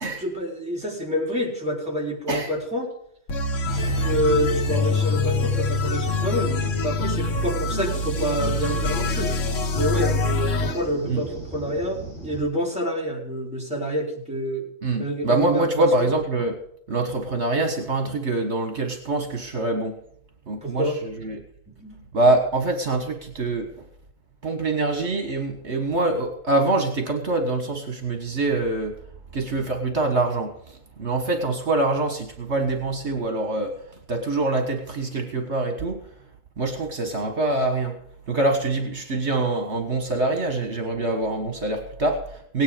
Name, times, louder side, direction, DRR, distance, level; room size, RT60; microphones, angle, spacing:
voice 1, 0.2-2.9 3.7-9.3 9.7-14.7 15.0-16.1 20.6-21.0 21.7-21.9, equal, 5° right, -3 dB, 4.2 m, -28 dB
sound 1, 3.3-10.8, left 2 dB, 90° left, 1.5 m, -24 dB
sound 2, 3.6-12.4, right 2 dB, 25° right, 8.0 m, -37 dB
voice 2, 14.8-16.6 16.9-20.0 20.5-21.4 22.1-23.7 24.4-28.9 29.3-33.8 34.1-36.0 36.6-38.0 38.3-42.6, right 2 dB, 65° right, 5 dB, 1.8 m, -24 dB
17.5 x 10.5 x 5.1 m, 0.69 s
omnidirectional pair, 1.3 m